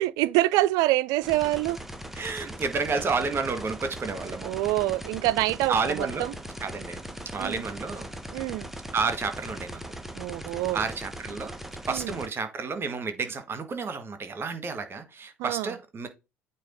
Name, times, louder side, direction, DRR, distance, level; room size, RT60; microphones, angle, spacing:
voice 1, 0.0-1.8 4.4-6.3 7.4-7.6 8.3-8.7 10.2-10.8 11.9-12.1 15.4-15.7, right 17 dB, 60° right, 0.4 m, -26 dB
sound 1, 1.2-12.3, right 1 dB, 5° right, 1.3 m, -40 dB
voice 2, 2.2-4.5 5.7-6.2 6.6-7.0 7.3-8.1 8.9-9.8 10.5-11.5 11.9-16.1, right 4 dB, 30° right, 1.9 m, -30 dB
8.7 x 3.0 x 5.3 m
figure-of-eight pair, 60°, 7 cm